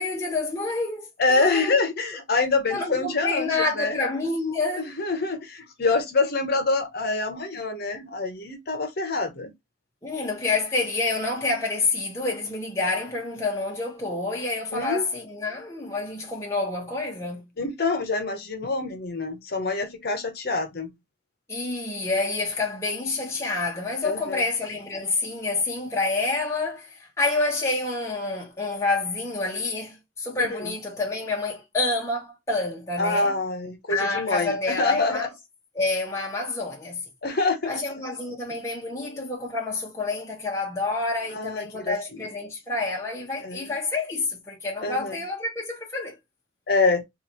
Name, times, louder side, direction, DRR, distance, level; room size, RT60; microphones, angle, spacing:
voice 1, 0.0-1.8 2.7-4.9 10.0-17.5 21.5-33.4 33.9-35.3 35.7-37.1 37.7-46.2, left 3 dB, 15° left, 0.9 m, -28 dB
voice 2, 1.2-4.0 5.0-9.5 14.7-15.0 17.6-20.9 24.0-24.4 30.4-30.6 33.0-35.3 37.2-37.8 41.3-42.2 43.4-43.6 44.8-45.2 46.7-47.0, left 3 dB, 55° left, 0.8 m, -26 dB
3.0 x 2.5 x 4.2 m
head